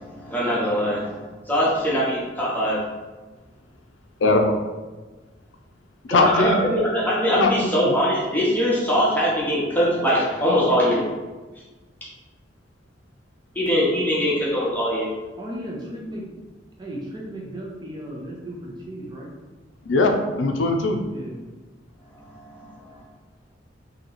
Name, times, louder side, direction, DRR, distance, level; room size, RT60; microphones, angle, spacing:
voice 1, 0.0-2.8 6.1-11.1 13.5-15.1 22.3-23.0, equal, 10° left, -6 dB, 0.8 m, -22 dB
voice 2, 4.2-4.6 6.0-6.6 7.4-7.9 19.9-21.0, left 2 dB, 80° left, 4 dB, 0.4 m, -20 dB
voice 3, 15.4-16.3 16.8-19.3 21.1-21.5, right 1 dB, 25° right, -2 dB, 0.6 m, -35 dB
3.0 x 2.8 x 3.9 m, 1.2 s
head